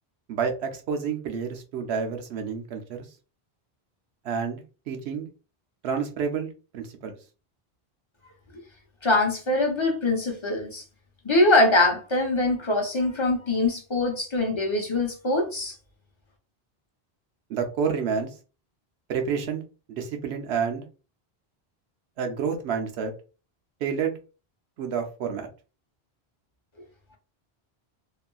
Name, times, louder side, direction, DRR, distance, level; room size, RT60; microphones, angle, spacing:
voice 1, 0.3-3.0 4.2-5.3 5.8-7.2 17.5-18.3 19.1-19.6 19.9-20.9 22.2-23.1 23.8-24.2 24.8-25.5, right 6 dB, 90° right, 0.9 m, -29 dB
voice 2, 9.0-10.8 11.2-15.7, left 2 dB, 35° left, 0.7 m, -23 dB
2.8 x 2.3 x 2.2 m
omnidirectional pair, 1.1 m